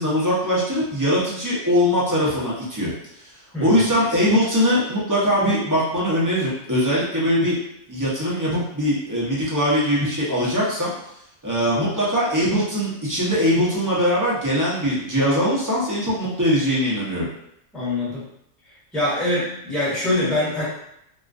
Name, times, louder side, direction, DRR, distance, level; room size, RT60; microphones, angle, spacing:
voice 1, 0.0-2.9 3.6-7.6 7.9-10.9 11.4-17.3, equal, 25° right, -8 dB, 0.4 m, -21 dB
voice 2, 3.5-3.9 17.7-18.2 18.9-20.6, left 1 dB, ahead, -9 dB, 0.9 m, -24 dB
2.4 x 2.2 x 2.4 m, 0.76 s
omnidirectional pair, 1.3 m